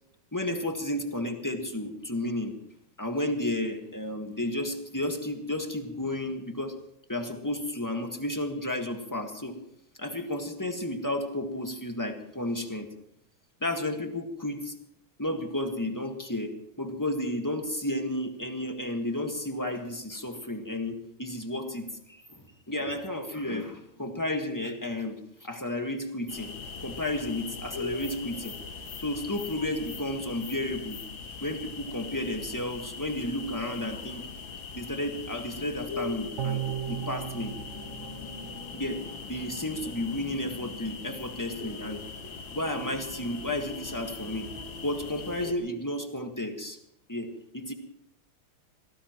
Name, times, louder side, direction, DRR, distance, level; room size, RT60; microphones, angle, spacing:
voice 1, 0.3-2.5 3.0-6.8 7.1-9.6 10.0-12.9 13.6-14.7 15.2-16.5 16.8-25.2 25.4-26.5 26.8-28.6 29.0-31.0 31.4-34.2 34.7-37.6 38.7-39.0 39.3-42.0 42.5-44.5 44.8-46.8 47.1-47.7, left 1 dB, 10° left, 4 dB, 1.3 m, -32 dB
sound 1, 26.3-45.5, left 5 dB, 65° left, 2.2 m, -40 dB
sound 2, 36.4-39.7 40.1-40.2, right 10 dB, 65° right, 0.7 m, -37 dB
25.5 x 18.0 x 3.1 m, 0.75 s
omnidirectional pair, 2.4 m